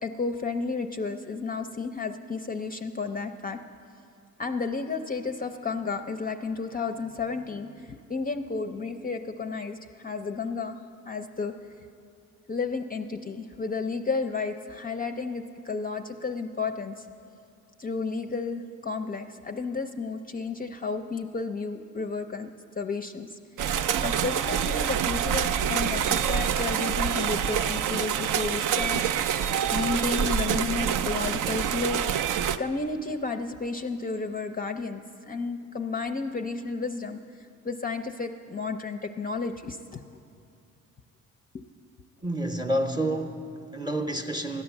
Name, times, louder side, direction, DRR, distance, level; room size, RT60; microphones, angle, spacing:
voice 1, 0.0-3.6 4.4-11.5 12.5-17.1 17.8-23.7 24.0-29.1 29.7-40.0 41.5-41.7, left 4 dB, 30° left, 6 dB, 0.5 m, -32 dB
sound 1, 23.6-32.6, right 8 dB, 70° right, 0.5 m, -26 dB
voice 2, 42.2-44.6, right 1 dB, 15° right, 4 dB, 0.7 m, -29 dB
13.5 x 9.5 x 7.1 m, 2.5 s
cardioid pair, 105°, 32 cm